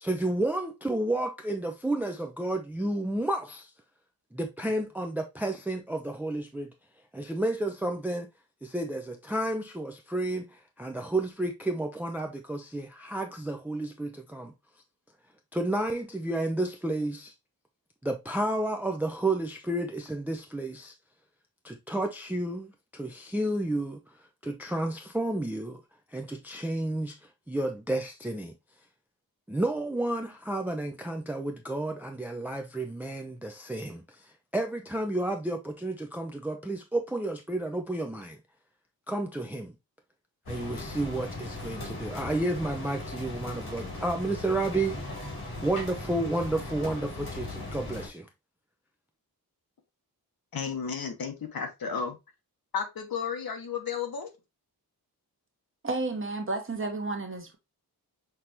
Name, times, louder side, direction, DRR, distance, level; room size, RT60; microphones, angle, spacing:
voice 1, 0.0-3.7 4.3-6.7 7.1-8.3 8.6-14.5 15.5-17.3 18.0-20.9 21.6-24.0 24.4-25.8 26.1-27.2 27.5-28.5 29.5-38.4 39.1-39.7 40.5-45.0 45.6-48.3, right 1 dB, 5° right, 0.4 m, -31 dB
Rain and thunder in Beijing, 40.5-48.1, left 2 dB, 85° left, 2.7 m, -38 dB
voice 2, 50.5-52.2 52.7-54.3, left 6 dB, 70° left, 1.2 m, -33 dB
voice 3, 55.8-57.6, right 3 dB, 35° right, 1.0 m, -31 dB
5.9 x 3.3 x 2.8 m
wide cardioid pair, 160°, 38 cm